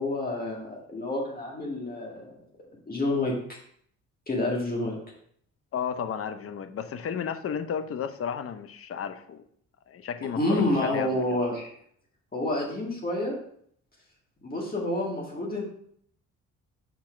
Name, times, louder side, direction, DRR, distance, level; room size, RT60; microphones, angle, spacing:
voice 1, 0.0-2.3 2.9-3.6 4.3-4.9 10.4-11.7 12.3-13.3 14.4-15.6, left 1 dB, 30° left, -2 dB, 1.9 m, -28 dB
voice 2, 5.7-9.4 9.9-11.4, left 7 dB, 50° left, 10 dB, 0.7 m, -33 dB
6.0 x 4.3 x 4.9 m, 0.64 s
cardioid pair, 90°, 30 cm